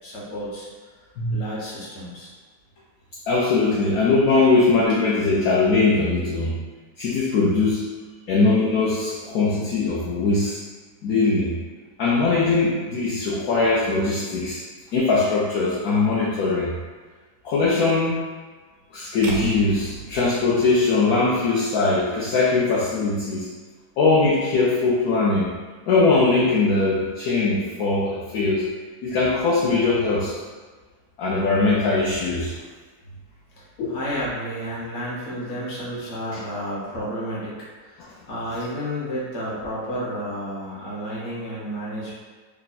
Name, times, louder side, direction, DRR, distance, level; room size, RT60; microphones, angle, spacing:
voice 1, 0.0-0.7 1.3-2.3 4.3-4.4 33.6-42.1, equal, 50° left, -7 dB, 1.2 m, -31 dB
voice 2, 3.3-6.6 7.0-7.9 8.3-10.6 11.0-11.6 12.0-14.6 14.9-16.7 17.4-18.2 18.9-23.5 24.0-25.5 25.9-28.6 29.0-30.3 31.2-32.5 33.8-34.0, left 3 dB, 70° left, -7 dB, 1.0 m, -21 dB
sound 1, 19.2-21.5, right 3 dB, 75° right, 1.1 m, -36 dB
3.4 x 2.2 x 4.0 m, 1.4 s
omnidirectional pair, 1.8 m